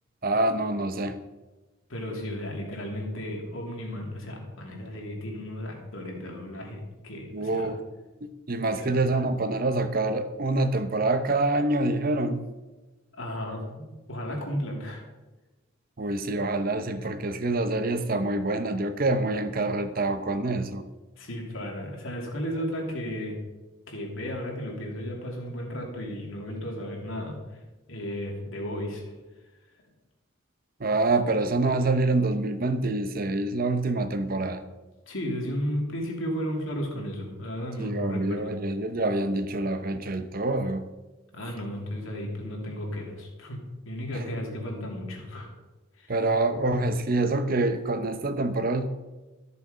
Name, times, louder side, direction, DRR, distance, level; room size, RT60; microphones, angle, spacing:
voice 1, 0.2-1.2 7.3-7.8 8.5-12.4 16.0-20.8 30.8-34.6 37.8-40.9 44.1-44.2 46.1-48.9, right 2 dB, 45° right, 10 dB, 0.8 m, -26 dB
voice 2, 1.9-7.7 8.6-9.0 13.2-15.0 21.2-23.4 23.9-27.6 27.9-29.0 35.1-38.5 41.3-43.6 43.8-45.5 46.0-46.1, equal, 75° left, 0 dB, 2.8 m, -34 dB
13.5 x 6.9 x 5.1 m, 1.1 s
head